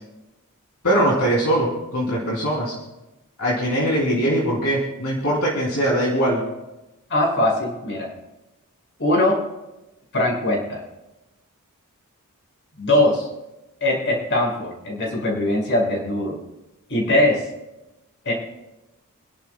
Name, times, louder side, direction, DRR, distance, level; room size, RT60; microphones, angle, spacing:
voice 1, 0.8-2.7 3.4-6.4, right 1 dB, 75° left, -5 dB, 3.4 m, -21 dB
voice 2, 7.1-8.1 9.0-9.4 10.1-10.8 12.8-13.3 13.8-16.4 16.9-17.5 18.2-18.3, left 1 dB, 55° left, -2 dB, 5.6 m, -21 dB
29.0 x 11.5 x 2.3 m, 0.99 s
head